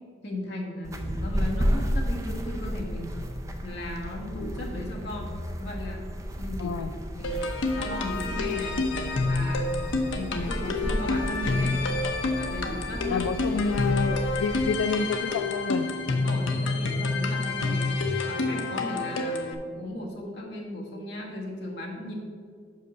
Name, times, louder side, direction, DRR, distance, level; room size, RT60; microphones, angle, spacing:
voice 1, 0.2-3.1 3.6-6.0 6.4-6.8 7.1-7.5 7.8-8.8 9.2-9.7 10.1-11.8 12.3-13.2 13.5-13.7 16.1-17.9 18.2-22.1, left 1 dB, 55° left, -2 dB, 1.4 m, -36 dB
sound 1, 0.8-14.6, equal, 15° right, 0.5 m, -33 dB
voice 2, 6.6-6.9 10.3-10.5 13.1-15.9, left 4 dB, 90° left, 7 dB, 0.3 m, -29 dB
sound 2, 7.2-19.5, left 3 dB, 75° left, 0.7 m, -28 dB
5.5 x 5.4 x 6.1 m, 2.1 s
head